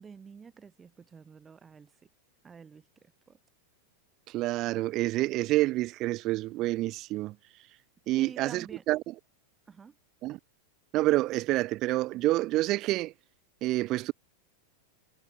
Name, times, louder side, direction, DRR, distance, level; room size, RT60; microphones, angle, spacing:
voice 1, 0.0-1.9 2.4-2.9 3.3-3.4 8.2-8.8 9.7-9.9, right 6 dB, 15° right, 1.8 m, -48 dB
voice 2, 4.3-7.7 8.1-9.1 10.2-10.4 10.9-13.1 13.6-14.1, right 18 dB, 35° right, 0.6 m, -28 dB
figure-of-eight pair, 90°, 0 cm